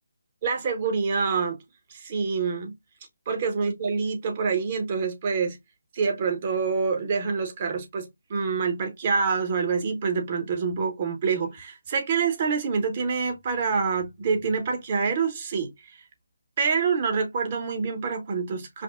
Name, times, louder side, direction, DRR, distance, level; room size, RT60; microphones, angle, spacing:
voice 1, 0.4-1.6 1.9-2.7 3.3-5.6 5.9-15.7 16.6-18.8, right 5 dB, 35° right, 0.9 m, -26 dB
5.1 x 2.1 x 2.3 m
figure-of-eight pair, 150°, 0 cm